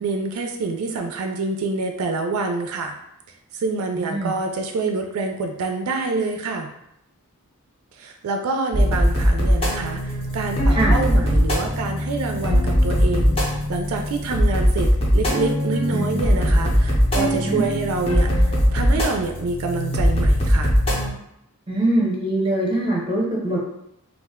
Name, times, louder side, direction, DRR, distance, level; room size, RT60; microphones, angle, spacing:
voice 1, 0.0-3.0 3.5-6.7 8.0-20.7, right 3 dB, 85° right, 4 dB, 0.3 m, -27 dB
voice 2, 4.0-4.3 10.7-11.0 15.9-16.2 17.5-17.6 21.7-23.6, right 1 dB, 25° right, -3 dB, 0.7 m, -23 dB
sound 1, 8.7-21.1, equal, 25° left, 0.5 m, -20 dB
2.4 x 2.1 x 3.5 m, 0.81 s
head